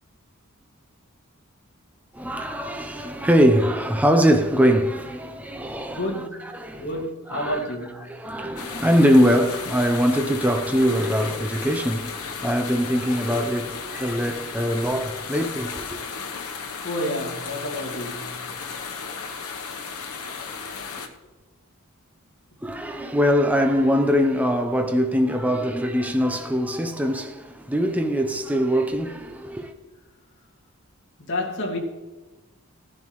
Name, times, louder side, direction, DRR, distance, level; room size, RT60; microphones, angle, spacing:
voice 1, 2.1-6.9 7.3-7.6 8.1-16.0 22.6-29.7, equal, 5° right, 0.7 m, -22 dB
voice 2, 5.9-6.5 6.8-8.1 16.8-18.4 31.2-31.8, left 1 dB, 55° left, 2.1 m, -29 dB
sound 1, 8.6-21.1, left 5 dB, 85° left, 1.1 m, -34 dB
17.0 x 10.5 x 3.2 m
head